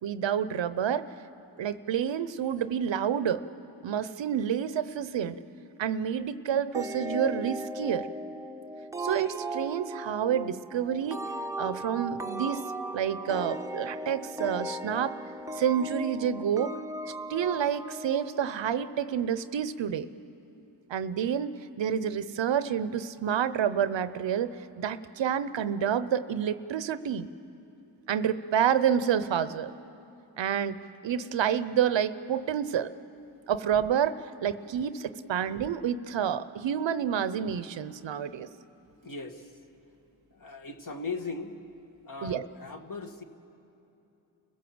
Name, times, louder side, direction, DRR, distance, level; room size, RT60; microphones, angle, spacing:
voice 1, 0.0-1.1 1.6-3.4 3.8-5.4 5.8-8.1 9.0-11.2 11.6-12.6 12.9-15.2 15.5-16.8 17.3-20.1 20.9-27.3 28.1-29.7 30.4-32.9 33.5-38.5 42.2-42.5, right 8 dB, 80° right, 14 dB, 0.8 m, -29 dB
sound 1, 6.7-19.2, right 1 dB, 5° right, 0.8 m, -37 dB
voice 2, 39.0-39.5 40.3-41.6 42.1-43.2, left 4 dB, 45° left, 4 dB, 1.9 m, -38 dB
30.0 x 16.5 x 7.8 m, 2.9 s
cardioid pair, 60°, 44 cm